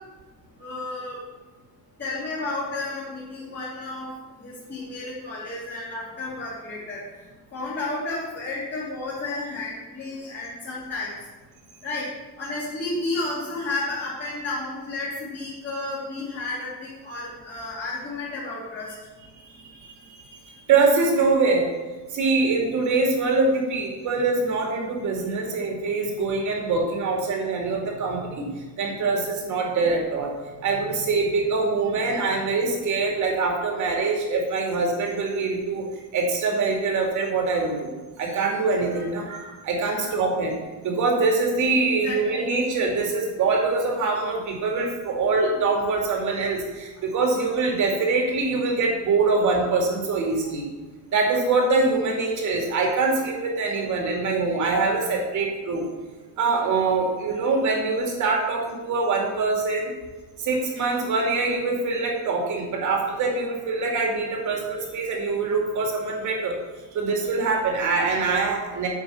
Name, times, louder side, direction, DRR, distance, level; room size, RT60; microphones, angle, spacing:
voice 1, 0.6-1.2 2.0-4.1 4.4-7.0 7.5-11.1 11.8-12.1 12.4-18.9 39.8-40.1 42.0-42.5, left 2 dB, 30° left, -9 dB, 2.7 m, -32 dB
voice 2, 19.4-21.7 22.1-30.3 30.6-35.9 36.1-37.9 38.2-40.6 40.8-50.6 51.1-55.9 56.4-59.9 60.4-66.5 66.9-68.9, right 3 dB, 50° right, 0 dB, 2.4 m, -24 dB
9.2 x 5.7 x 7.0 m, 1.2 s
cardioid pair, 175°, 38 cm